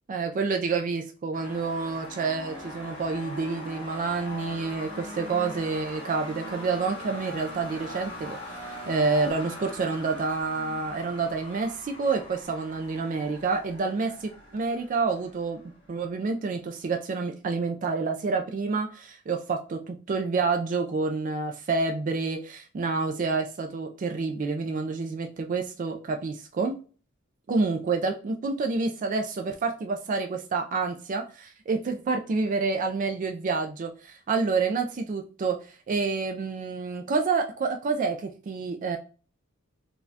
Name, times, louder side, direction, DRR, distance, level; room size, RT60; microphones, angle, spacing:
voice 1, 0.1-8.4 8.7-15.6 15.9-26.8 27.5-39.0, right 4 dB, 40° right, 4 dB, 0.3 m, -28 dB
sound 1, 1.3-16.2, left 1 dB, 55° left, 1.4 m, -41 dB
4.1 x 2.2 x 2.6 m, 0.37 s
head